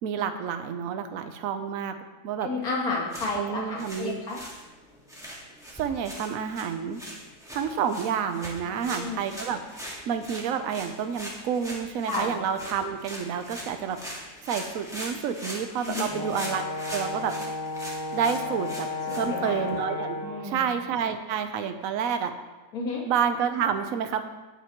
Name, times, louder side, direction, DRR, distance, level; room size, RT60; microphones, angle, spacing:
voice 1, 0.0-1.9 2.2-2.5 3.3-4.2 5.7-7.0 7.5-9.6 9.9-14.0 14.5-17.3 18.1-20.2 20.4-22.3 23.1-24.2, right 7 dB, 65° right, 8 dB, 1.1 m, -29 dB
voice 2, 2.4-4.4 8.6-9.2 12.1-12.3 15.9-16.1 19.1-19.7 20.2-20.8 22.7-23.0, left 3 dB, 65° left, -3 dB, 2.4 m, -32 dB
sound 1, 3.0-19.8, equal, ahead, 1.6 m, -41 dB
Brass instrument, 16.1-20.5, left 3 dB, 20° left, 0.8 m, -33 dB
17.5 x 6.1 x 3.0 m, 1.2 s
omnidirectional pair, 1.7 m